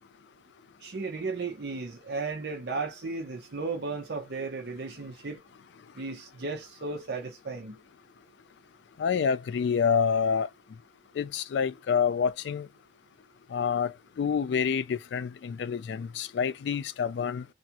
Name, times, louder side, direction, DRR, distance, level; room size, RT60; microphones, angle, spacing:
voice 1, 0.8-5.4 5.9-7.8, right 3 dB, 65° right, 0.6 m, -35 dB
voice 2, 9.0-10.5 11.2-12.7 13.5-17.5, left 6 dB, 75° left, 0.3 m, -27 dB
3.4 x 2.4 x 2.8 m
head